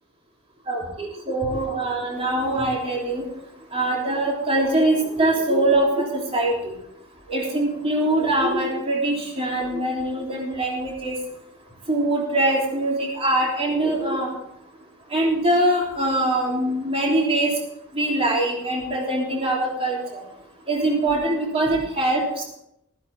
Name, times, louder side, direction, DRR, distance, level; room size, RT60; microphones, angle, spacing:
voice 1, 0.7-3.2 3.7-6.0 6.3-6.5 7.3-11.1 11.9-14.3 15.1-17.5 17.9-20.0 20.7-22.4, right 1 dB, 25° right, -2 dB, 3.4 m, -23 dB
15.5 x 14.0 x 3.6 m, 0.78 s
head